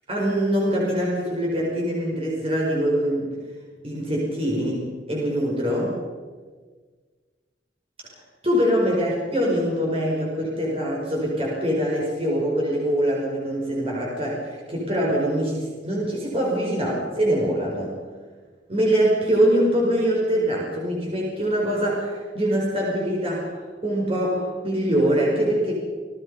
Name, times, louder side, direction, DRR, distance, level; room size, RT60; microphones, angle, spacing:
voice 1, 0.1-3.3 3.8-6.0 8.4-17.9 18.7-25.7, equal, 35° right, -3 dB, 4.9 m, -23 dB
27.0 x 19.0 x 5.5 m, 1.5 s
head